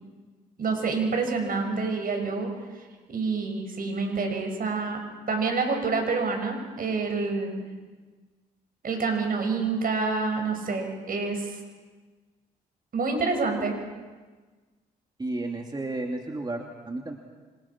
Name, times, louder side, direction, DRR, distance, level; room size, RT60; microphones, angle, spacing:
voice 1, 0.6-2.5 3.1-5.0 5.3-7.6 8.8-11.6 12.9-13.8, right 4 dB, 60° right, 4 dB, 6.6 m, -27 dB
voice 2, 15.2-17.2, right 2 dB, 25° right, 2 dB, 2.8 m, -32 dB
26.5 x 26.5 x 6.1 m, 1.4 s
supercardioid pair, 65°, 17 cm